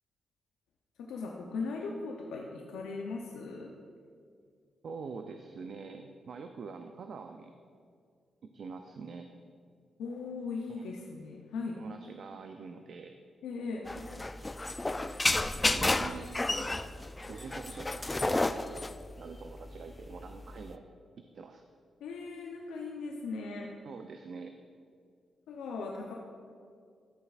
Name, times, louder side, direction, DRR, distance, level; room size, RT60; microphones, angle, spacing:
voice 1, 1.0-3.7 10.0-11.8 13.4-13.9 22.0-23.7 25.5-26.1, left 4 dB, 90° left, -1 dB, 0.6 m, -38 dB
voice 2, 4.8-7.5 8.4-9.3 10.7-10.8 11.8-13.1 15.7-16.8 17.3-18.7 19.2-20.8 21.3-21.6 23.8-24.5, right 5 dB, 65° right, 6 dB, 0.4 m, -45 dB
sound 1, 13.9-20.7, left 2 dB, 20° left, 0.3 m, -31 dB
13.0 x 6.8 x 2.4 m, 2.2 s
supercardioid pair, 60°, 0 cm